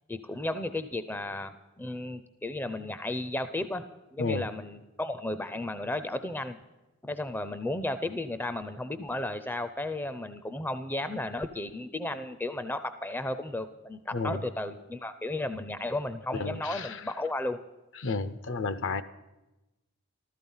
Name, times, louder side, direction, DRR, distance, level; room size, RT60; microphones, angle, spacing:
voice 1, 0.1-3.8 4.1-6.6 7.0-17.6, left 2 dB, 10° left, 11 dB, 0.4 m, -34 dB
voice 2, 16.3-17.0 18.0-19.0, left 4 dB, 55° left, 13 dB, 0.6 m, -31 dB
14.0 x 13.5 x 5.5 m, 1.0 s
head